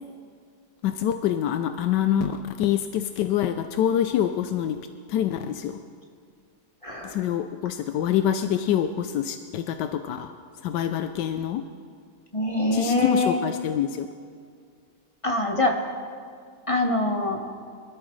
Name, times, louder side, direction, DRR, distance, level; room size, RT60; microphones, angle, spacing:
voice 1, 0.8-4.8 5.1-5.8 7.0-10.3 10.6-11.6 12.7-14.1, left 10 dB, 90° left, 8 dB, 1.2 m, -25 dB
voice 2, 6.8-7.2 12.3-13.5 15.2-15.7 16.7-17.4, left 2 dB, 20° left, 1 dB, 1.1 m, -24 dB
24.0 x 13.5 x 3.2 m, 2.2 s
omnidirectional pair, 1.8 m